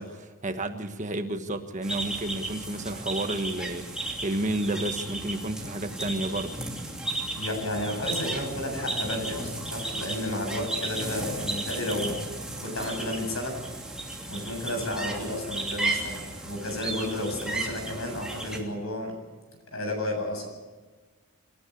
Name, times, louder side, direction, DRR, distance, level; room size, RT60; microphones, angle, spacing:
voice 1, 0.0-6.6, right 1 dB, 35° right, 7 dB, 1.4 m, -31 dB
sound 1, 1.8-18.6, right 2 dB, 5° right, 2.9 m, -34 dB
voice 2, 7.4-12.3 12.6-13.6 14.3-19.2 19.7-20.5, left 1 dB, 75° left, 3 dB, 7.6 m, -32 dB
26.5 x 13.0 x 8.6 m, 1.3 s
head